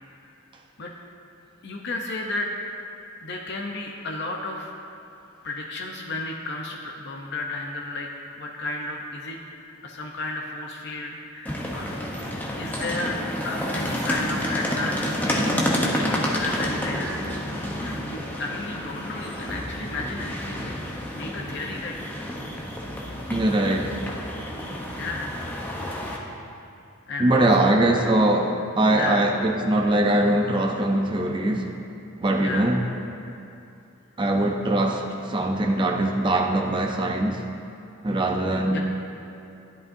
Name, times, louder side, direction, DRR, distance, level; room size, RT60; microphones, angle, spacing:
voice 1, 1.6-2.5 3.2-4.7 5.4-8.1 8.4-9.4 9.8-11.9 12.6-13.2 13.4-15.6 15.9-17.2 17.5-22.1 24.6-25.4 27.1-27.8 28.9-29.3 32.4-32.7 33.2-33.4 38.7-38.8, left 2 dB, 50° left, 0 dB, 0.7 m, -33 dB
sound 1, 11.4-26.2, equal, 10° left, 0.8 m, -29 dB
voice 2, 23.3-24.0 27.2-31.7 32.2-32.8 34.2-37.4 38.0-38.8, right 1 dB, 20° right, 2 dB, 0.5 m, -22 dB
12.0 x 10.5 x 2.6 m, 2.6 s
head